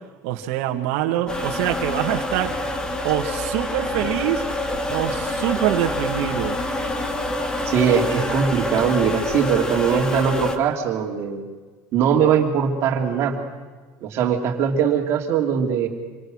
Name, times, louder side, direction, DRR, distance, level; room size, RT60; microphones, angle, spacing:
voice 1, 0.2-2.6 3.0-4.5 4.9-6.6, right 12 dB, 65° right, 3 dB, 2.0 m, -24 dB
sound 1, 1.3-10.6, left 1 dB, 10° left, 1.6 m, -26 dB
voice 2, 7.6-11.4 11.9-13.4 14.0-15.9, right 7 dB, 35° right, 3 dB, 3.1 m, -21 dB
26.5 x 26.0 x 6.5 m, 1.4 s
cardioid pair, 180°, 7 cm